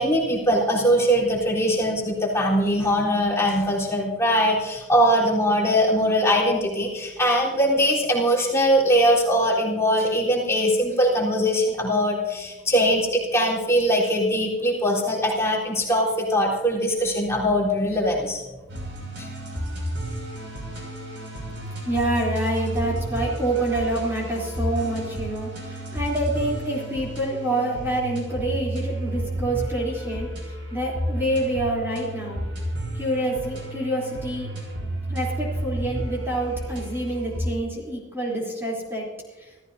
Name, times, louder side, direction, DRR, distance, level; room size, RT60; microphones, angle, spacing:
voice 1, 0.0-18.4 19.2-19.3, equal, 15° left, -5 dB, 3.8 m, -21 dB
sound 1, 18.7-37.5, right 1 dB, 85° right, 6.0 m, -32 dB
voice 2, 21.8-30.3 30.7-32.4 32.9-34.5 35.1-39.1 39.4-39.5, right 1 dB, 15° right, -5 dB, 3.4 m, -27 dB
27.0 x 15.0 x 2.7 m, 1.2 s
head